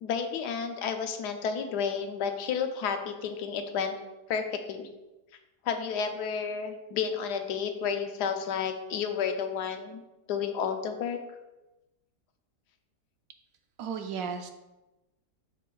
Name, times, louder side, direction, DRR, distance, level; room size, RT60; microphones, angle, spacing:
voice 1, 0.0-3.9 4.3-4.9 5.6-10.0 10.3-11.2, left 6 dB, 90° left, 6 dB, 1.2 m, -31 dB
voice 2, 13.8-14.5, right 6 dB, 70° right, 6 dB, 0.9 m, -34 dB
7.6 x 6.5 x 2.3 m, 1.0 s
omnidirectional pair, 1.7 m